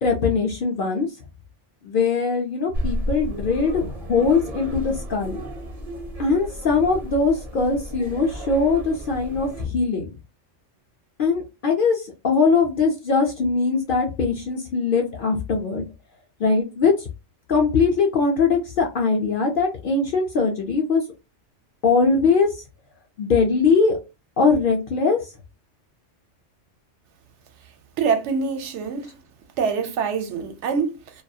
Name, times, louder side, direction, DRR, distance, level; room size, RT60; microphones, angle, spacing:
voice 1, 0.0-1.1 1.8-5.4 6.2-10.1 11.2-15.8 16.4-17.1 17.5-21.0 21.8-22.6 23.2-24.0 24.4-25.2, left 4 dB, 60° left, 0.6 m, -21 dB
sound 1, 2.7-9.7, equal, 40° right, 0.6 m, -33 dB
voice 2, 28.0-29.1 29.6-31.2, right 5 dB, 75° right, 0.9 m, -25 dB
2.3 x 2.3 x 2.6 m
omnidirectional pair, 1.3 m